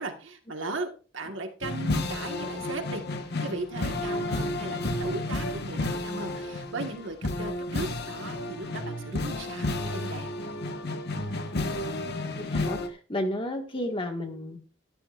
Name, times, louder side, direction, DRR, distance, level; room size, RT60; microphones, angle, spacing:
voice 1, 0.0-3.0 3.4-10.3, right 2 dB, 70° right, 5 dB, 1.6 m, -37 dB
sound 1, 1.6-12.9, left 2 dB, 55° left, 1.5 m, -31 dB
voice 2, 12.3-14.6, left 1 dB, 25° left, 4 dB, 1.7 m, -32 dB
13.5 x 13.0 x 2.5 m, 0.37 s
head